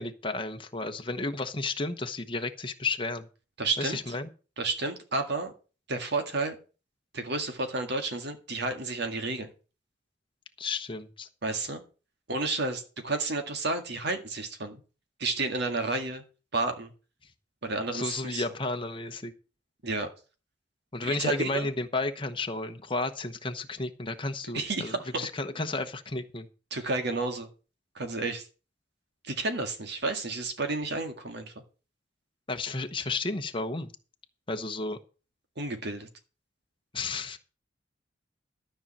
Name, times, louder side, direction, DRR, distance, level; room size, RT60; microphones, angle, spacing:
voice 1, 0.0-3.3 3.8-4.3 10.6-11.3 17.9-19.3 20.9-26.5 32.5-33.9 34.5-35.0 36.9-37.4, left 3 dB, 30° left, 6 dB, 1.1 m, -32 dB
voice 2, 3.6-4.0 4.6-5.5 5.9-6.6 7.1-9.5 11.4-11.8 12.3-14.8 15.2-16.2 16.5-16.9 17.6-18.4 19.8-20.1 21.0-21.7 24.5-25.1 26.7-27.5 28.0-28.5 29.2-31.5 35.6-36.1, right 3 dB, 65° right, 6 dB, 1.9 m, -31 dB
13.0 x 5.5 x 7.4 m, 0.35 s
head